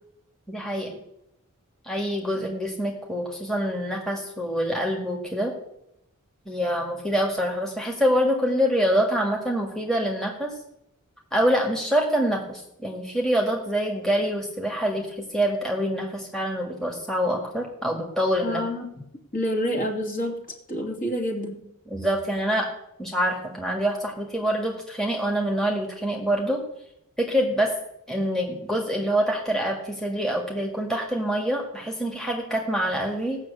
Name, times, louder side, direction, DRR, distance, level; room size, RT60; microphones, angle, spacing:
voice 1, 0.5-1.0 1.8-5.5 6.5-10.5 11.3-18.6 21.9-22.7 23.0-26.6 27.2-27.7 28.1-33.4, equal, ahead, 0 dB, 1.9 m, -25 dB
voice 2, 18.4-18.9 19.3-20.4 20.7-21.6, equal, 40° left, 0 dB, 2.8 m, -28 dB
17.0 x 6.6 x 8.4 m, 0.81 s
head